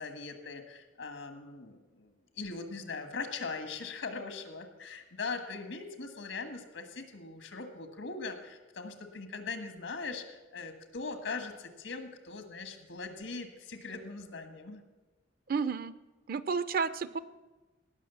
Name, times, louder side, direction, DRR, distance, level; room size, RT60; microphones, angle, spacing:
voice 1, 0.0-14.8, left 4 dB, 90° left, 7 dB, 1.6 m, -41 dB
voice 2, 15.5-15.9 16.3-17.2, right 5 dB, 50° right, 15 dB, 0.5 m, -31 dB
18.0 x 6.3 x 7.0 m, 1.2 s
head